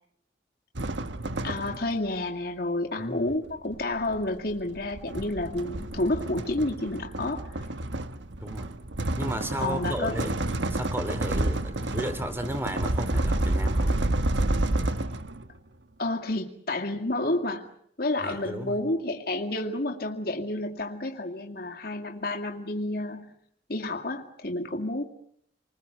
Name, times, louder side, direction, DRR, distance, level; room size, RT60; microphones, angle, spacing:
sound 1, 0.8-2.1 3.3-15.5, right 1 dB, 75° right, 1.3 m, -29 dB
voice 1, 1.4-7.7 9.6-10.3 16.0-17.7 18.0-23.3 23.7-25.0, left 2 dB, 50° left, 3 dB, 2.3 m, -30 dB
voice 2, 3.0-3.3 8.4-8.7 9.2-10.4 10.7-13.9 18.2-18.8, right 1 dB, 10° right, 10 dB, 2.9 m, -34 dB
29.5 x 20.5 x 8.1 m, 0.69 s
head